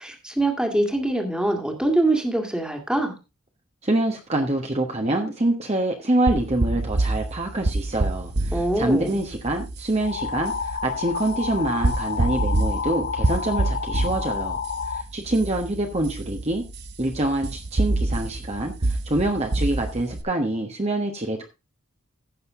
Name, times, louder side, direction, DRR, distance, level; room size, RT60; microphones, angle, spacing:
voice 1, 0.0-3.1 8.5-9.2, right 1 dB, 5° right, 4 dB, 1.9 m, -24 dB
voice 2, 3.8-14.6 14.9-16.6 17.0-21.5, right 2 dB, 30° right, 3 dB, 1.1 m, -25 dB
sound 1, 6.3-20.2, right 2 dB, 50° right, 1.0 m, -27 dB
sound 2, 10.0-15.0, left 6 dB, 45° left, 0.6 m, -30 dB
15.5 x 6.6 x 3.7 m, 0.28 s
head